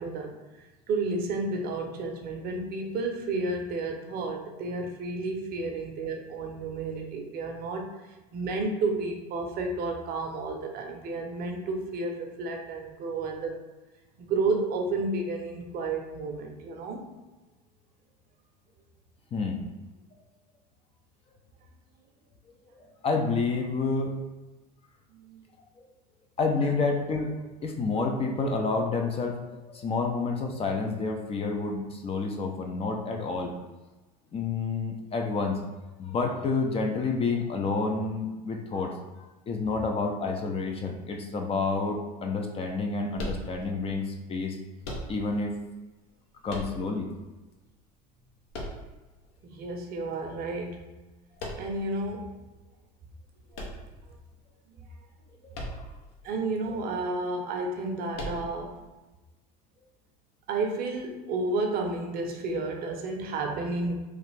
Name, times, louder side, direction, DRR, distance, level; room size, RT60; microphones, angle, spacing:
voice 1, 0.0-7.9 8.3-13.6 14.2-17.1 25.1-25.4 49.4-50.8 51.5-52.3 56.2-58.9 60.5-63.9, right 3 dB, 45° right, 3 dB, 0.6 m, -31 dB
voice 2, 19.3-19.7 23.0-24.2 26.4-27.3 27.6-33.6 34.3-35.6 36.0-39.0 39.5-44.6 45.1-45.5 46.4-47.1 55.4-55.9, left 4 dB, 30° left, 3 dB, 0.4 m, -29 dB
sound 1, 43.1-43.9 44.8-45.5 46.5-47.2 48.5-49.3 51.4-51.9 53.5-54.4 55.5-56.1 56.4-56.5 58.1-58.8, equal, 65° left, 0.8 m, -38 dB
3.1 x 2.4 x 3.2 m, 1.1 s
hypercardioid pair, 80°, 21 cm